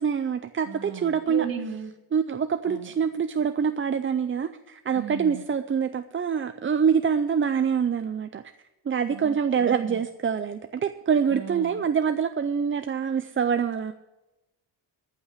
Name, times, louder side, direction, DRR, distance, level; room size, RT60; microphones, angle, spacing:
voice 1, 0.0-1.5 2.1-8.4 8.9-13.9, right 7 dB, 30° right, 9 dB, 0.4 m, -25 dB
voice 2, 0.6-1.9 2.6-2.9 4.9-5.4 9.1-10.0 11.3-11.8, right 6 dB, 45° right, 2 dB, 2.1 m, -37 dB
14.5 x 5.7 x 9.7 m, 0.99 s
wide cardioid pair, 150°, 47 cm